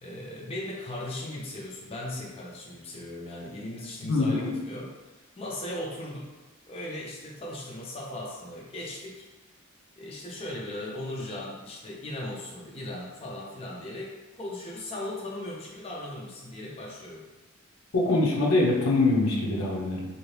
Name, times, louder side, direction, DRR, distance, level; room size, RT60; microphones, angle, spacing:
voice 1, 0.0-4.9 5.4-6.3 6.7-9.2 10.0-17.3, left 1 dB, 30° left, -4 dB, 0.5 m, -38 dB
voice 2, 4.0-4.5 17.9-20.1, left 2 dB, 80° left, -2 dB, 0.7 m, -24 dB
2.8 x 2.5 x 3.2 m, 1.2 s
head